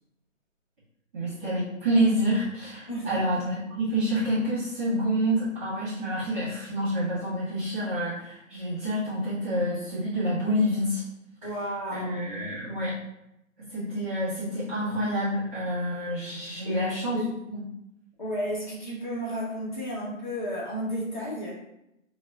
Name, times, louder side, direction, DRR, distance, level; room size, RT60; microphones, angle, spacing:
voice 1, 1.1-11.0 11.9-13.0 13.6-17.2 17.5-17.6, equal, 10° right, -11 dB, 0.8 m, -28 dB
voice 2, 2.9-3.2 11.4-12.3 16.6-17.2 18.2-21.6, equal, 35° left, -5 dB, 1.0 m, -33 dB
5.2 x 2.1 x 2.3 m, 0.84 s
hypercardioid pair, 155°, 40 cm